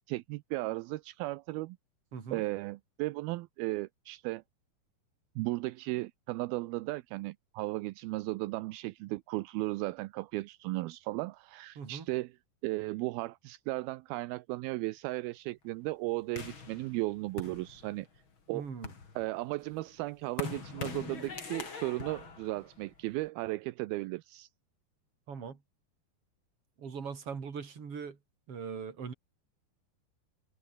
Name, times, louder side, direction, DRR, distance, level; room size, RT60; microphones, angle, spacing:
voice 1, 0.0-1.8 2.3-4.4 5.4-12.4 12.6-18.1 18.5-18.7 19.2-24.5, right 20 dB, 80° right, 2.4 m, -35 dB
voice 2, 2.1-2.4 11.8-12.1 18.5-18.9 25.3-25.6 26.8-28.2 28.5-29.1, right 6 dB, 40° right, 3.8 m, -40 dB
sound 1, 16.4-18.2 18.6-23.3, left 5 dB, 35° left, 3.6 m, -43 dB
omnidirectional pair, 4.6 m